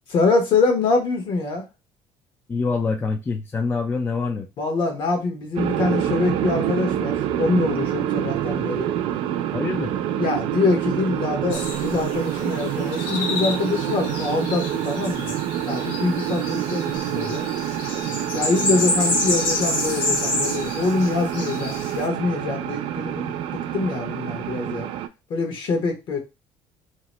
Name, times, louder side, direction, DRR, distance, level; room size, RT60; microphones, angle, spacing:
voice 1, 0.1-1.6 4.6-8.9 10.2-17.5 18.3-24.9 25.3-26.2, left 3 dB, 60° left, 4 dB, 1.1 m, -24 dB
voice 2, 2.5-4.5 9.5-9.9, left 4 dB, 25° left, 3 dB, 0.4 m, -25 dB
sound 1, 5.6-25.1, right 11 dB, 70° right, 0.4 m, -27 dB
sound 2, 11.5-22.1, left 2 dB, 85° left, 1.0 m, -29 dB
2.8 x 2.1 x 3.0 m, 0.25 s
cardioid pair, 100°, 10 cm